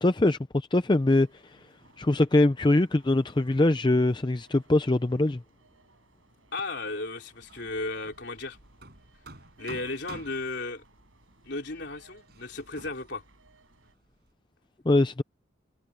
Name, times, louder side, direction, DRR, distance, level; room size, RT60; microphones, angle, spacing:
voice 1, 0.0-1.6 2.0-5.4 14.9-15.2, left 2 dB, 25° left, 0.5 m, -23 dB
sound 1, 1.0-13.9, right 3 dB, 85° right, 7.3 m, -62 dB
voice 2, 6.5-8.6 9.6-10.8 11.4-13.2, left 2 dB, 60° left, 4.1 m, -35 dB
Hammer, 7.4-14.3, right 2 dB, 50° right, 6.2 m, -50 dB
head